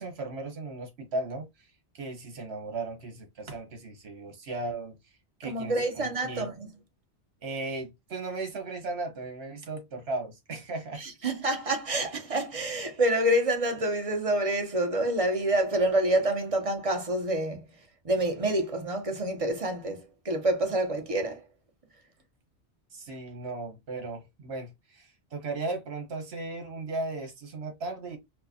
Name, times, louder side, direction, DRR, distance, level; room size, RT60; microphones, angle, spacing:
voice 1, 0.0-1.5 1.9-5.0 5.4-6.5 7.4-11.0 22.9-28.2, right 2 dB, 65° right, 1.4 m, -36 dB
voice 2, 5.4-6.7 11.0-17.7 18.0-21.4, right 1 dB, 35° right, 0.9 m, -27 dB
4.7 x 2.3 x 2.8 m
omnidirectional pair, 1.1 m